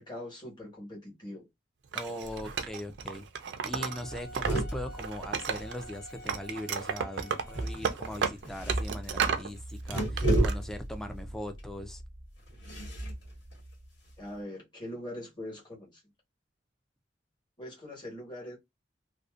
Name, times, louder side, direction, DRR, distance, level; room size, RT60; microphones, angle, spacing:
voice 1, 0.0-1.5 14.2-16.0 17.6-18.6, left 1 dB, 25° left, 1.2 m, -42 dB
voice 2, 1.9-3.3 3.6-12.0, left 1 dB, 5° left, 0.3 m, -40 dB
Wood, 1.9-4.6 4.9-6.0 6.3-9.5 9.9-10.5, right 6 dB, 70° right, 0.4 m, -33 dB
sound 1, 2.2-2.7 3.0-3.1 3.4-3.6 3.9-6.3 7.4-14.3, right 1 dB, 85° left, 1.3 m, -34 dB
Wind instrument woodwind instrument, 3.7-8.3, right 1 dB, 55° left, 0.8 m, -49 dB
2.5 x 2.1 x 2.3 m
head